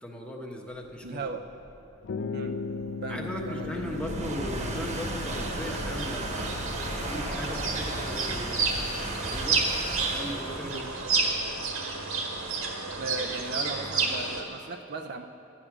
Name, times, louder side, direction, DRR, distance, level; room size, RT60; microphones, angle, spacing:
voice 1, 0.0-1.3 3.1-6.5 6.9-9.6 10.1-10.9, equal, 5° left, 0 dB, 1.2 m, -38 dB
voice 2, 1.0-1.4 2.3-2.5 3.0-4.3 10.7-10.9 13.0-15.3, right 3 dB, 50° right, 5 dB, 0.6 m, -37 dB
sound 1, 1.1-14.4, right 1 dB, 35° right, 1.2 m, -36 dB
sound 2, 2.0-9.8, left 5 dB, 60° left, 0.4 m, -39 dB
sound 3, 5.2-14.4, right 4 dB, 75° right, 1.6 m, -31 dB
12.0 x 10.0 x 6.0 m, 2.7 s
head